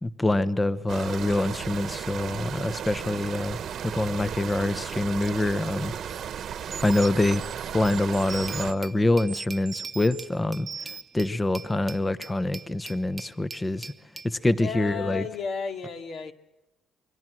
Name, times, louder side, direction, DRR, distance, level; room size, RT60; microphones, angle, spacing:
voice 1, 0.0-3.6 3.8-5.9 6.8-7.4 7.7-13.9 14.2-15.2, left 2 dB, 15° left, 1.0 m, -25 dB
sound 1, 0.9-8.7, right 8 dB, 60° right, 1.2 m, -35 dB
sound 2, 6.1-6.2 6.7-8.8 9.3-10.3 10.7-11.2, right 6 dB, 35° right, 1.2 m, -39 dB
Glass, 8.5-14.4, right 3 dB, 20° right, 0.8 m, -44 dB
voice 2, 14.5-16.3, left 6 dB, 60° left, 2.3 m, -33 dB
28.5 x 23.5 x 6.2 m
cardioid pair, 130°, 0 cm